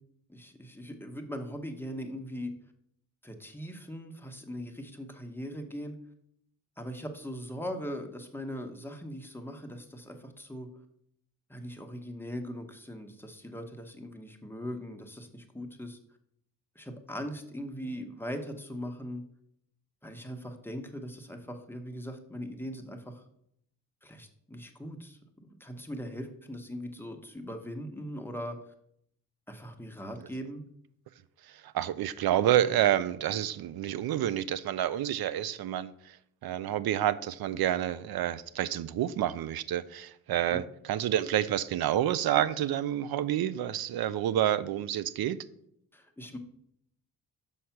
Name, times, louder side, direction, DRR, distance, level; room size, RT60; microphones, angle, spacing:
voice 1, 0.3-2.5 3.2-6.0 6.8-10.7 11.5-16.0 16.8-19.2 20.0-23.2 24.0-28.6 29.5-30.6 40.5-40.6 45.9-46.4, equal, 5° left, 0.9 m, -40 dB
voice 2, 31.6-36.2 36.4-45.4, right 11 dB, 85° right, 0.5 m, -29 dB
6.4 x 5.6 x 5.7 m
wide cardioid pair, 125°, 36 cm